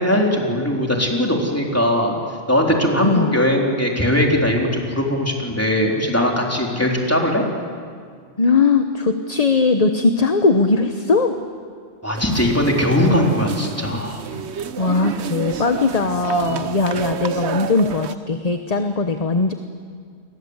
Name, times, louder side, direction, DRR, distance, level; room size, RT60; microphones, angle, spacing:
voice 1, 0.0-2.2 2.5-7.4 12.0-14.2, left 1 dB, 15° left, 0 dB, 3.8 m, -20 dB
voice 2, 3.0-3.3 8.4-11.3 14.8-19.5, left 4 dB, 35° left, 7 dB, 1.1 m, -19 dB
sound 1, 12.2-18.2, right 8 dB, 75° right, 1.2 m, -29 dB
29.5 x 22.5 x 8.1 m, 2.1 s
omnidirectional pair, 1.1 m